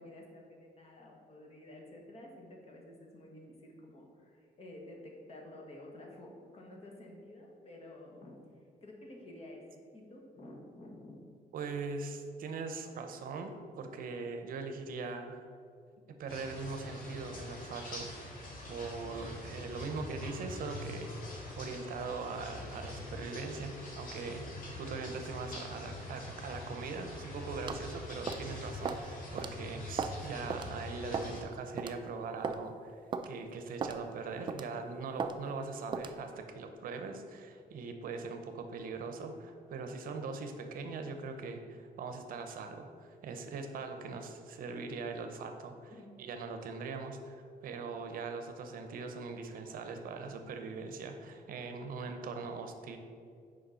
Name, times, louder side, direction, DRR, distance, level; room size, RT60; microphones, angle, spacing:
voice 1, 0.0-11.2 31.3-31.5 45.9-46.1, left 1 dB, 40° left, 0 dB, 1.4 m, -51 dB
voice 2, 11.5-15.4 16.1-18.1 18.7-21.1 21.6-24.5 24.8-33.0 33.2-45.9 46.2-53.0, right 4 dB, 65° right, 6 dB, 0.8 m, -41 dB
sound 1, 16.3-31.4, left 1 dB, 65° left, 2.0 m, -44 dB
sound 2, 27.7-27.9 28.3-28.5 28.8-29.0 29.4-29.5 30.0-30.2 30.5-30.7 31.1-31.4 31.8-31.9 32.4-32.6 33.1-33.3 33.8-34.0 34.5-34.7 35.2-35.4 35.9-36.2, right 5 dB, 30° right, 0.4 m, -36 dB
6.4 x 5.0 x 5.6 m, 2.3 s
cardioid pair, 140°, 16 cm